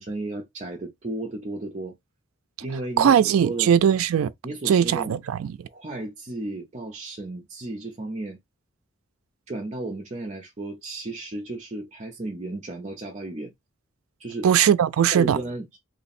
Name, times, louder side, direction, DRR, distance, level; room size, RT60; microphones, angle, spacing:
voice 1, 0.0-2.0 2.6-3.7 4.4-5.2 5.7-8.4 9.5-13.5 14.2-14.5 15.0-15.8, right 2 dB, 35° right, 0.5 m, -34 dB
voice 2, 3.0-4.3 4.7-5.5 14.4-15.4, right 8 dB, 90° right, 0.3 m, -19 dB
3.1 x 2.0 x 4.1 m
head